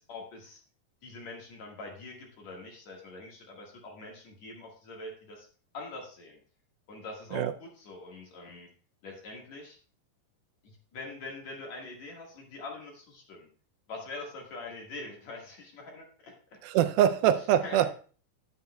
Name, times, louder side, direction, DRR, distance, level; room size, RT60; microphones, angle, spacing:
voice 1, 0.1-0.6 1.0-5.5 5.7-6.4 6.9-8.7 9.0-9.8 10.6-13.5 13.9-16.6 17.6-17.9, left 3 dB, 55° left, -1 dB, 2.6 m, -44 dB
voice 2, 16.6-17.9, right 11 dB, 85° right, 10 dB, 2.4 m, -24 dB
10.5 x 9.5 x 2.3 m, 0.40 s
omnidirectional pair, 4.2 m